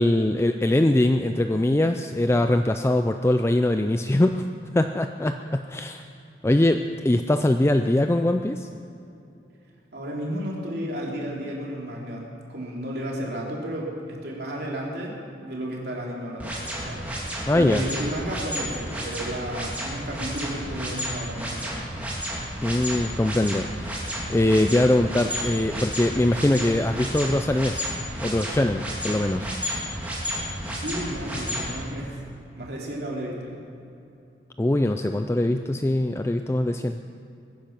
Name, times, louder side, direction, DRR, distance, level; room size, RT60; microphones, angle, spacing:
voice 1, 0.0-4.5 4.7-6.0 6.4-8.7 17.5-17.8 22.6-27.9 28.2-29.6 34.6-37.1, left 1 dB, 15° left, 7 dB, 0.4 m, -22 dB
voice 2, 9.9-17.0 17.5-21.9 30.7-32.2 32.5-33.6, right 1 dB, 60° right, -3 dB, 3.3 m, -33 dB
sound 1, 16.4-31.7, equal, 10° right, 3.0 m, -31 dB
22.0 x 10.0 x 6.0 m, 2.7 s
head